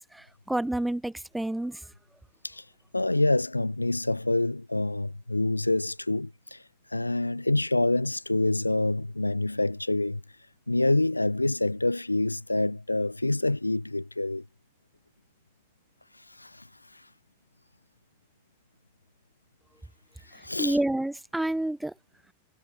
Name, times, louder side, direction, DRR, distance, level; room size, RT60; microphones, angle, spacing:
voice 1, 0.0-1.8 20.6-21.9, right 1 dB, 5° right, 0.5 m, -29 dB
voice 2, 2.4-10.2 10.7-14.4 16.1-17.1 20.2-20.8, left 2 dB, 85° left, 0.8 m, -27 dB
figure-of-eight pair, 90°, 0 cm